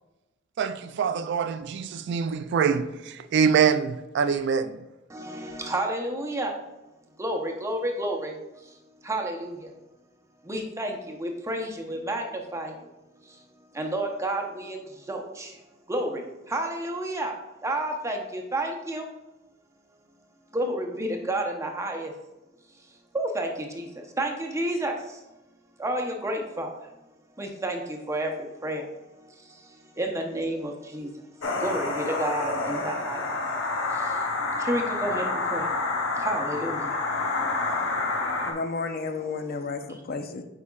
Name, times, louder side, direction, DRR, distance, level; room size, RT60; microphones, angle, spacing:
voice 1, 0.6-4.8, right 6 dB, 60° right, 0.3 m, -25 dB
voice 2, 5.1-6.5 7.2-8.8 9.0-9.7 10.4-12.9 13.2-13.4 13.7-15.6 15.9-17.3 17.6-19.1 20.5-22.1 22.7-25.2 25.8-26.9 27.4-33.4 33.9-34.3 34.6-38.6 39.6-39.7, right 1 dB, 15° right, 0.8 m, -31 dB
sound 1, 31.4-38.5, left 3 dB, 85° left, 1.0 m, -28 dB
voice 3, 38.4-40.4, left 4 dB, 50° left, 0.5 m, -32 dB
8.2 x 4.9 x 2.4 m
head